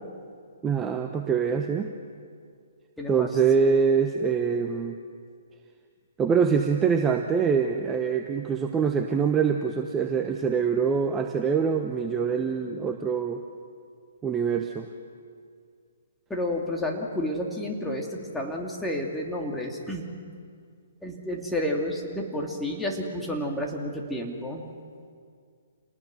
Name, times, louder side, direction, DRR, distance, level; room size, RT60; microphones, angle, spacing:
voice 1, 0.6-1.9 3.1-5.0 6.2-13.4 14.2-14.9, right 6 dB, 15° right, 5 dB, 1.0 m, -24 dB
voice 2, 3.0-3.3 16.3-20.1 21.0-24.6, left 1 dB, 5° left, 0 dB, 2.9 m, -30 dB
28.0 x 19.0 x 6.3 m, 2.2 s
hypercardioid pair, 135°, 0 cm